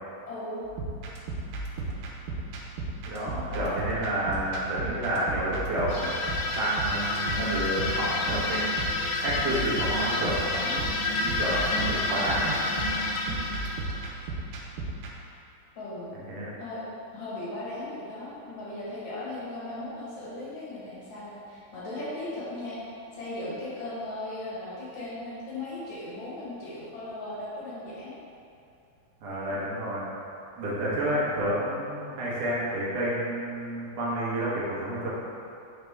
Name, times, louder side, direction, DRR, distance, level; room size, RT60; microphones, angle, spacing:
voice 1, 0.3-0.6 3.5-3.8 10.0-10.8 13.3-13.6 15.8-16.1 16.6-16.8 17.1-22.8 23.1-28.1 29.5-29.7, left 2 dB, 60° left, -8 dB, 2.3 m, -37 dB
sound 1, 0.7-15.1, right 3 dB, 85° right, 2.5 m, -35 dB
voice 2, 3.1-6.1 6.5-8.6 9.2-10.8 11.2-12.5 16.1-16.5 29.2-30.1 30.6-35.1, right 1 dB, 65° right, -7 dB, 1.6 m, -30 dB
sound 2, 5.9-14.3, left 2 dB, 90° left, 1.7 m, -29 dB
5.8 x 5.0 x 3.4 m, 2.6 s
omnidirectional pair, 4.3 m